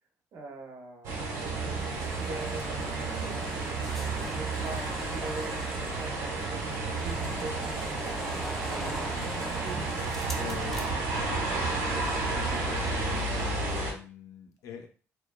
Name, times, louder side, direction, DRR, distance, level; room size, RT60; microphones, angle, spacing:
voice 1, 0.3-3.8 4.3-8.2 8.6-9.9, right 3 dB, 55° right, 3 dB, 0.6 m, -43 dB
sound 1, 1.0-13.9, right 3 dB, 85° right, 0.9 m, -32 dB
sound 2, 1.8-10.9, left 1 dB, 5° left, 0.3 m, -42 dB
voice 2, 10.4-11.9 12.2-14.9, left 7 dB, 75° left, 4 dB, 0.5 m, -43 dB
2.8 x 2.2 x 2.2 m, 0.38 s
cardioid pair, 160°, 5 cm